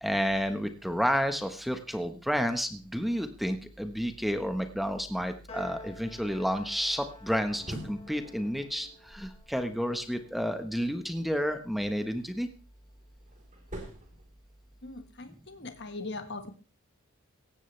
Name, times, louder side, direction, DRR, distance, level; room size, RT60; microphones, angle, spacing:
voice 1, 0.0-8.9 9.1-12.5, equal, ahead, 7 dB, 1.2 m, -30 dB
Piano, 5.5-12.0, left 1 dB, 30° left, 5.0 m, -51 dB
sound 1, 7.1-10.2 12.4-15.0, right 1 dB, 35° right, 4.0 m, -46 dB
voice 2, 14.8-16.5, left 3 dB, 50° left, 7 dB, 1.6 m, -40 dB
17.5 x 15.0 x 3.3 m, 0.32 s
head